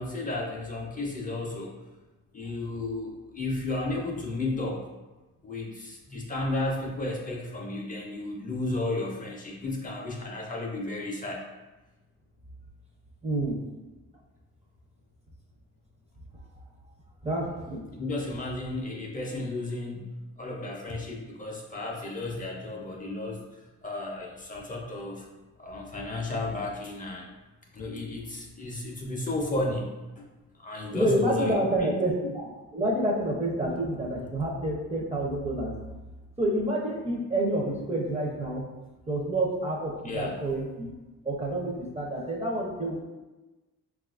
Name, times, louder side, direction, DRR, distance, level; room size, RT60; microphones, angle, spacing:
voice 1, 0.0-1.8 2.3-4.9 5.4-11.4 18.0-20.1 20.4-23.4 23.8-25.3 25.6-27.3 27.7-30.3 30.6-32.0 40.0-40.4, left 2 dB, 25° left, -1 dB, 0.5 m, -33 dB
voice 2, 13.2-13.6 17.2-17.9 30.9-35.7 36.4-38.7 39.1-40.9 41.2-43.0, right 1 dB, 20° right, -1 dB, 0.5 m, -28 dB
3.6 x 2.3 x 2.4 m, 1.1 s
cardioid pair, 90°, 30 cm